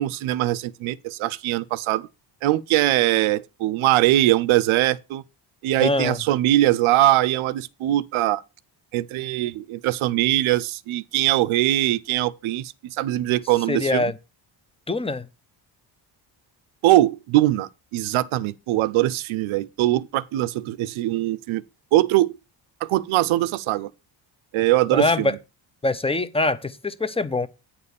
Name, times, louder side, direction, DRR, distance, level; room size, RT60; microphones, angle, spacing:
voice 1, 0.0-2.1 2.4-5.2 5.6-8.4 8.9-14.1 16.8-21.6 21.9-22.4 22.8-23.9 24.5-25.4, right 15 dB, 85° right, 0.7 m, -22 dB
voice 2, 5.8-6.2 13.7-14.2 14.9-15.3 24.9-25.4 25.8-27.5, left 2 dB, 10° left, 0.8 m, -23 dB
9.4 x 4.3 x 6.9 m
cardioid pair, 85°, 48 cm